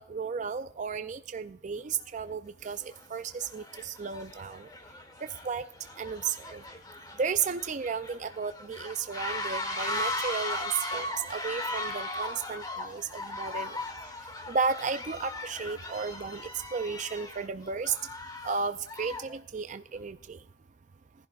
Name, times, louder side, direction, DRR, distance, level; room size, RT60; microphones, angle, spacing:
voice 1, 0.0-2.8 3.1-4.7 5.4-5.6 6.0-6.6 7.2-13.8 14.5-16.4 16.7-17.9 18.4-20.4, right 5 dB, 40° right, 10 dB, 0.4 m, -33 dB
sound 1, 2.0-2.1 2.8-3.0 3.4-19.4, left 1 dB, 20° left, 1.3 m, -38 dB
19.5 x 11.0 x 2.4 m, 0.64 s
head